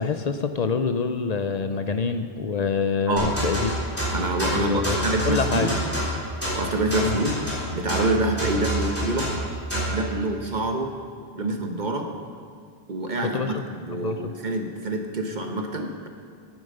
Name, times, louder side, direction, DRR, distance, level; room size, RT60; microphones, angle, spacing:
voice 1, 0.0-3.7 4.5-5.7 7.0-7.2 13.2-13.6 13.9-14.3, left 5 dB, 55° left, 8 dB, 0.5 m, -26 dB
voice 2, 3.1-3.4 4.1-5.8 6.5-7.4 7.7-9.3 9.9-10.9 11.3-12.1 12.9-16.1, right 2 dB, 50° right, 3 dB, 1.0 m, -26 dB
sound 1, 3.2-10.0, right 1 dB, 15° left, 3.5 m, -27 dB
9.1 x 9.1 x 6.5 m, 2.2 s
omnidirectional pair, 1.0 m